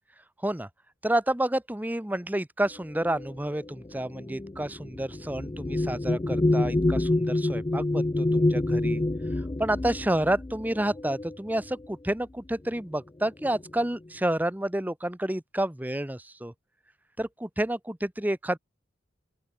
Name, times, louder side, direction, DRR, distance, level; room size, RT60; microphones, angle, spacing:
voice 1, 1.0-9.0 9.6-16.5 17.2-18.6, right 1 dB, 10° right, 0.8 m, -29 dB
sound 1, 3.0-11.9 12.8-12.9 13.3-13.9, left 2 dB, 20° left, 0.4 m, -28 dB
open air
head